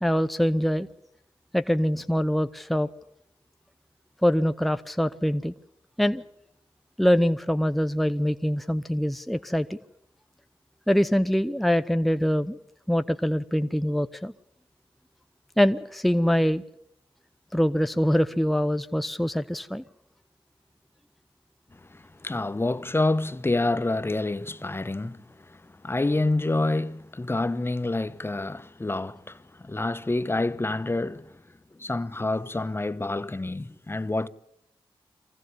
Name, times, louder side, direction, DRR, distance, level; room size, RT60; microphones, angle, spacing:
voice 1, 0.0-0.9 1.5-2.9 4.2-5.5 6.0-6.2 7.0-9.8 10.9-12.6 12.9-14.3 15.6-16.6 17.5-19.8, equal, ahead, 0.8 m, -24 dB
voice 2, 21.7-31.3 31.7-34.3, left 2 dB, 25° left, 1.0 m, -28 dB
23.5 x 16.0 x 9.6 m
cardioid pair, 50°, 10 cm